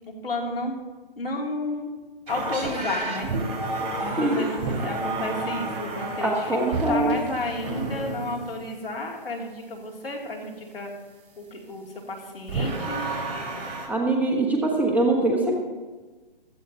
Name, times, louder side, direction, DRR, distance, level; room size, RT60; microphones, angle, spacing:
voice 1, 0.1-0.7 1.2-1.9 2.3-3.3 4.0-10.9 11.4-13.0, left 2 dB, 75° left, 0 dB, 3.0 m, -32 dB
sound 1, 2.3-8.6 12.5-13.9, right 2 dB, 40° right, 4.8 m, -30 dB
voice 2, 6.2-7.2 13.9-15.5, right 2 dB, 5° right, -1 dB, 1.2 m, -23 dB
16.0 x 13.5 x 2.9 m, 1.3 s
figure-of-eight pair, 135°, 29 cm